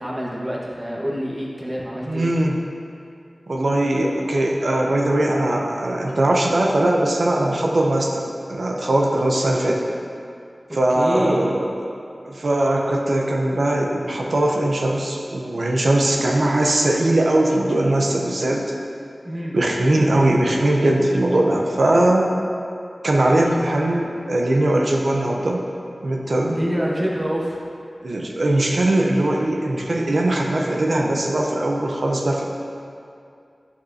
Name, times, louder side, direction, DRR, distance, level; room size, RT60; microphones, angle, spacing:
voice 1, 0.0-2.3 10.9-11.5 19.2-19.5 26.5-27.6, equal, 35° right, -5 dB, 1.6 m, -26 dB
voice 2, 2.1-2.6 3.5-9.8 10.7-11.7 12.2-18.7 19.5-22.3 23.0-25.7 26.0-26.6 28.0-32.5, right 1 dB, 75° right, 0 dB, 0.8 m, -20 dB
9.3 x 6.5 x 2.8 m, 2.5 s
cardioid pair, 40°, 0 cm